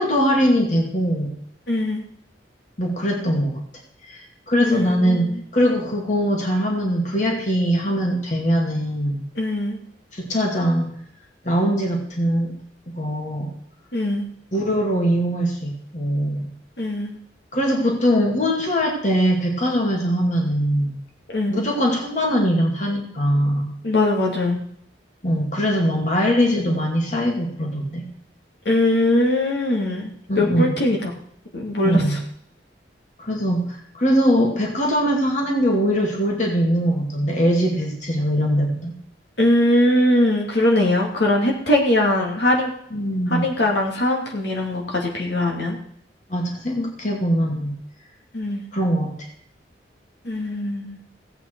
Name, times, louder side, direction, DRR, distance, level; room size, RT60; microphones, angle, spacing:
voice 1, 0.0-1.3 2.8-3.6 4.1-5.3 5.5-9.2 10.1-10.9 11.4-12.5 12.9-13.6 14.5-16.5 17.5-21.0 21.5-23.7 25.2-28.0 30.3-30.8 31.8-32.2 33.2-38.9 42.9-43.5 46.3-47.7 48.7-49.2, equal, 40° left, 0 dB, 2.5 m, -21 dB
voice 2, 1.7-2.0 4.6-5.4 9.4-9.8 13.9-14.3 16.8-17.2 21.3-21.6 23.8-24.6 28.6-31.0 31.5-32.0 39.4-42.7 43.4-45.8 48.3-48.6 50.2-51.0, left 1 dB, 70° left, -1 dB, 2.5 m, -21 dB
16.5 x 8.7 x 4.7 m, 0.70 s
head